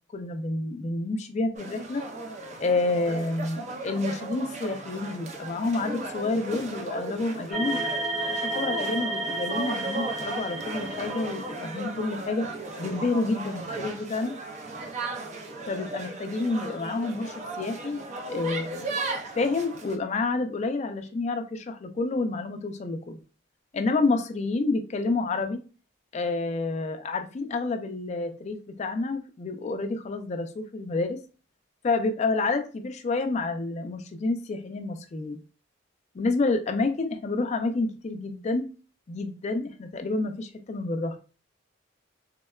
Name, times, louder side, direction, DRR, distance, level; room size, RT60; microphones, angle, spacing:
voice 1, 0.1-2.0 2.6-7.8 8.3-12.5 12.8-14.3 15.7-18.0 18.3-18.9 19.4-23.2 23.7-25.6 26.1-31.2 31.8-35.4 36.1-38.7 39.1-41.2, left 3 dB, 35° left, 0.3 m, -29 dB
sound 1, 1.5-20.0, right 2 dB, 35° right, 0.4 m, -36 dB
sound 2, 7.5-11.8, right 2 dB, 10° right, 0.8 m, -32 dB
3.5 x 2.1 x 2.2 m
head